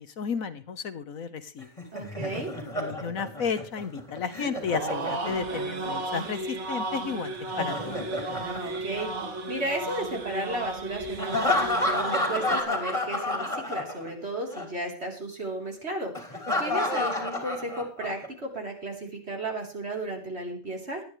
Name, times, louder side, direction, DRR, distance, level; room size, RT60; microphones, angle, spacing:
voice 1, 0.0-1.7 2.8-8.0, left 6 dB, 70° left, 11 dB, 1.4 m, -33 dB
Laughter, 1.6-5.7 7.3-9.5 11.2-14.3 14.5-14.7 16.2-18.3, left 1 dB, 20° left, 3.2 m, -30 dB
voice 2, 1.9-2.5 8.3-9.1 9.5-11.6 11.9-16.1 16.6-21.0, right 1 dB, 45° right, 0 dB, 4.0 m, -34 dB
sound 1, 4.6-12.6, right 2 dB, 70° right, 2.1 m, -34 dB
19.5 x 12.5 x 3.2 m, 0.37 s
omnidirectional pair, 1.5 m